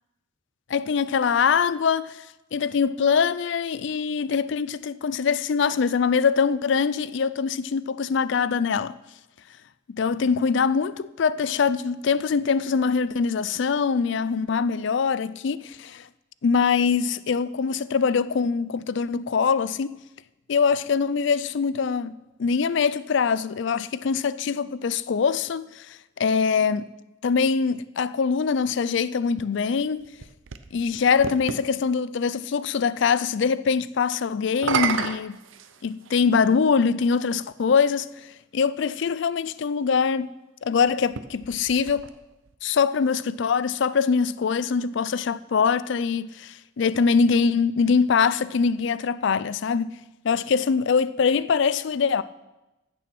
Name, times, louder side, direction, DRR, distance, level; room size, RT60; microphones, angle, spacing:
voice 1, 0.7-2.2 2.5-8.9 9.9-16.1 16.4-19.9 20.5-26.9 27.2-30.0 30.7-35.4 35.8-38.1 38.5-40.3 40.6-42.0 42.6-49.9 50.2-52.2, left 5 dB, 60° left, 0.4 m, -23 dB
sound 1, 29.8-31.7 34.5-36.2 37.2-37.3 41.0-42.5, right 6 dB, 70° right, 0.7 m, -31 dB
14.5 x 7.0 x 6.0 m
head